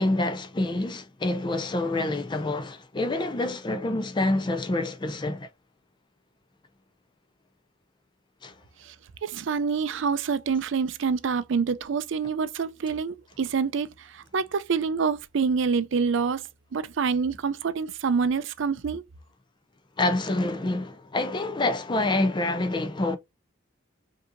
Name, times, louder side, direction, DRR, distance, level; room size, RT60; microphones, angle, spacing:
voice 1, 0.0-5.5 8.4-8.5 20.0-23.2, left 2 dB, 20° left, 0.4 m, -27 dB
voice 2, 9.2-16.4 16.7-19.0, right 5 dB, 60° right, 0.4 m, -26 dB
5.2 x 2.7 x 2.6 m
head